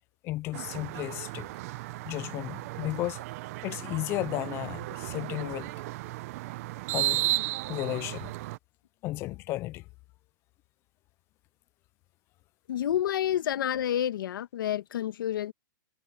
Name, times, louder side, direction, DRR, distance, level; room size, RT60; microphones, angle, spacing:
voice 1, 0.2-1.5 2.1-3.2 3.6-5.7 6.9-7.4 7.7-8.3 9.0-9.8, left 17 dB, 20° left, 0.3 m, -34 dB
sound 1, 0.5-8.6, right 20 dB, 45° right, 0.9 m, -34 dB
voice 2, 12.7-15.5, left 11 dB, 75° left, 1.4 m, -29 dB
hypercardioid pair, 155°, 11 cm